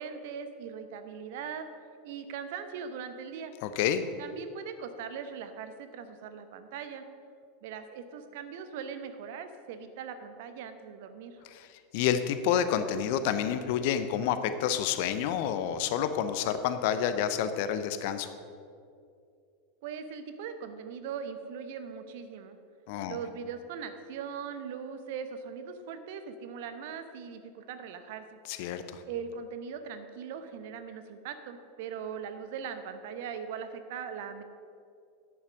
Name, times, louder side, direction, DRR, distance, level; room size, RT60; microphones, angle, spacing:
voice 1, 0.0-1.7 2.0-3.5 4.2-7.0 7.6-11.4 19.8-22.6 23.1-28.4 29.0-34.4, right 7 dB, 55° right, 9 dB, 0.9 m, -40 dB
voice 2, 3.6-4.0 11.5-11.7 11.9-18.3 22.9-23.2 28.5-29.0, left 9 dB, 55° left, 10 dB, 0.7 m, -29 dB
11.0 x 8.5 x 5.1 m, 2.4 s
figure-of-eight pair, 85°, 0 cm